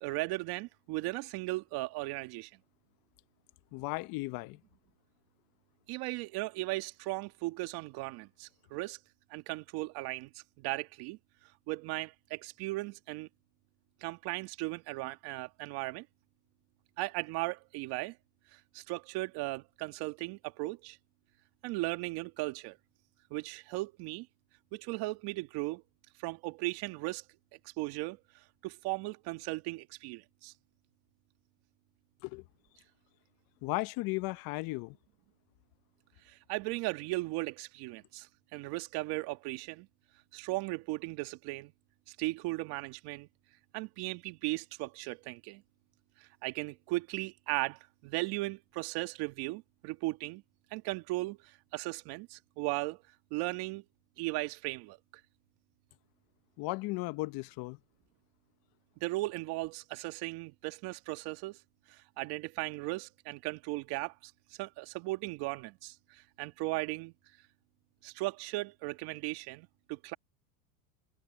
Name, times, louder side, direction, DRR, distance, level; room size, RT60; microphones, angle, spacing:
voice 1, 0.0-2.5 5.9-9.0 9.3-11.2 11.7-13.3 14.0-16.1 17.0-18.2 18.5-21.0 21.6-22.8 23.3-24.3 24.7-25.8 26.2-27.2 27.8-28.2 28.6-30.5 36.3-39.9 40.3-41.7 42.1-43.3 43.7-45.6 46.2-50.4 50.7-53.0 53.3-53.8 54.2-55.0 59.0-61.6 61.9-64.3 64.6-67.1 68.0-70.1, right 21 dB, 55° right, 2.1 m, -37 dB
voice 2, 3.7-4.6 32.2-32.4 33.6-35.0 56.6-57.8, left 23 dB, 50° left, 0.9 m, -35 dB
supercardioid pair, 115°, 44 cm